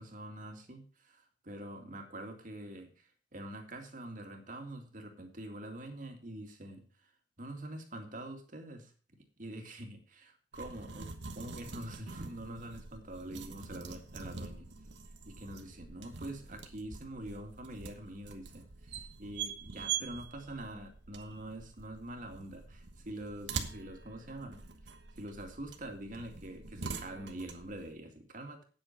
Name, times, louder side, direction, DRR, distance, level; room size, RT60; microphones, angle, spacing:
voice 1, 0.0-7.1 7.4-8.9 9.4-14.7 15.2-24.7 25.2-28.6, right 1 dB, 50° right, 4 dB, 2.3 m, -45 dB
sound 1, 10.5-27.9, right 6 dB, 80° right, 1.3 m, -44 dB
9.1 x 8.0 x 5.8 m, 0.39 s
head